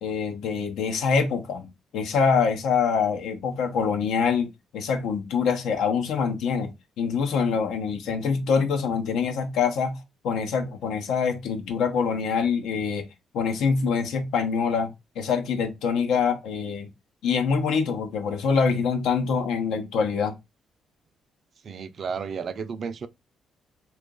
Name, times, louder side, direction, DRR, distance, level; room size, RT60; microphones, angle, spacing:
voice 1, 0.0-10.0 10.2-13.1 13.3-16.9 17.2-20.3, left 6 dB, 80° left, 0.7 m, -25 dB
voice 2, 21.6-23.1, right 6 dB, 50° right, 0.5 m, -32 dB
2.9 x 2.4 x 3.7 m
cardioid pair, 90°, 0 cm